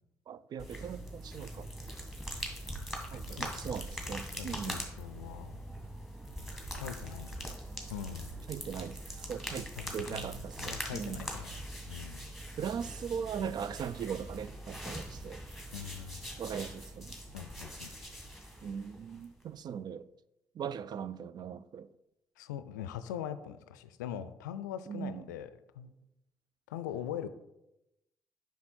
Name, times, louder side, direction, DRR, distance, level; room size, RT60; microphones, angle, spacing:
voice 1, 0.3-1.7 3.1-4.8 8.5-11.2 12.6-15.4 16.4-17.1 18.6-20.1 20.5-21.9 24.9-25.3, right 7 dB, 45° right, 0.4 m, -39 dB
sound 1, 0.6-19.5, equal, ahead, 2.1 m, -42 dB
voice 2, 3.1-3.7 4.4-5.6 6.5-7.5 7.9-8.3 9.8-12.3 15.7-16.2 17.3-17.9 22.4-25.9 26.7-27.3, left 10 dB, 80° left, 0.4 m, -42 dB
7.4 x 5.7 x 4.3 m
figure-of-eight pair, 45°, 10 cm